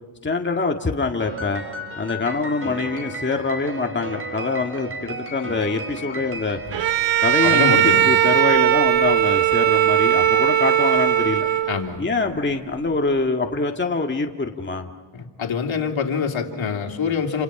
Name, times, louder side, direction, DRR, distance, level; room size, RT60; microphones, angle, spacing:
voice 1, 0.2-1.6 2.0-6.6 7.2-11.5 12.0-14.9, left 3 dB, 20° left, 3 dB, 2.0 m, -24 dB
Piano, 1.2-7.7, right 1 dB, 25° right, 5.1 m, -35 dB
Bowed string instrument, 6.7-12.0, right 11 dB, 60° right, 1.0 m, -18 dB
voice 2, 7.4-8.1 11.7-12.1 15.1-17.4, left 6 dB, 65° left, 2 dB, 3.4 m, -25 dB
30.0 x 28.0 x 6.0 m, 1.5 s
cardioid pair, 80°, 50 cm